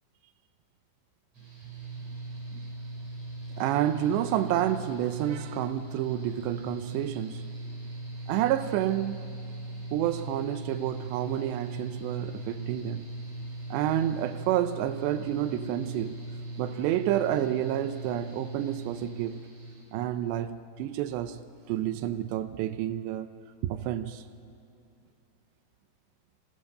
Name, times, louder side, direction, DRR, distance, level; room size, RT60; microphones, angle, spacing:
Mechanical fan, 1.3-19.8, right 2 dB, 35° right, 6.8 m, -39 dB
voice 1, 3.6-7.5 8.3-9.2 9.9-13.1 13.7-16.2 16.6-19.4 19.9-23.3 23.6-24.2, right 12 dB, 90° right, 3.0 m, -29 dB
30.0 x 26.0 x 6.7 m
omnidirectional pair, 4.9 m